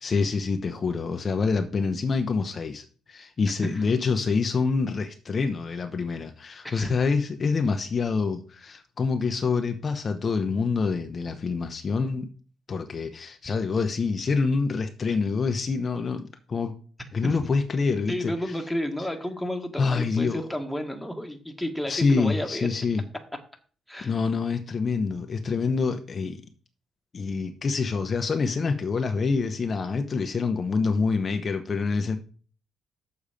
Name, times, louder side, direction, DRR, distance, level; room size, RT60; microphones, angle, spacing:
voice 1, 0.0-12.3 12.7-16.7 17.1-18.6 19.8-20.5 21.9-23.0 24.0-26.4 27.1-32.2, left 4 dB, 40° left, 7 dB, 0.8 m, -26 dB
voice 2, 18.1-22.7 23.9-24.1, equal, 5° left, 4 dB, 1.7 m, -31 dB
7.0 x 6.8 x 5.1 m, 0.40 s
cardioid pair, 90°, 0 cm